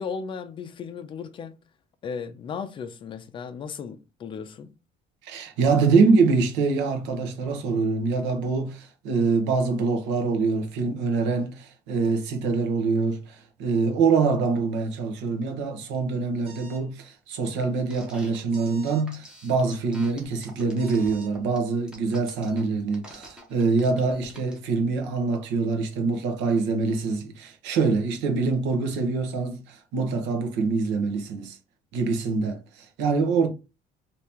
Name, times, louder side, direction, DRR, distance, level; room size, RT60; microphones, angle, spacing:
voice 1, 0.0-1.5 2.0-4.7, left 6 dB, 30° left, 0.4 m, -35 dB
voice 2, 5.2-31.6 31.9-33.5, right 4 dB, 85° right, 1.0 m, -25 dB
sound 1, 16.4-16.9 18.5-19.1 20.8-21.3, right 4 dB, 30° right, 1.0 m, -48 dB
sound 2, 17.9-24.6, equal, 5° right, 0.7 m, -46 dB
2.8 x 2.8 x 3.5 m
cardioid pair, 170°, 18 cm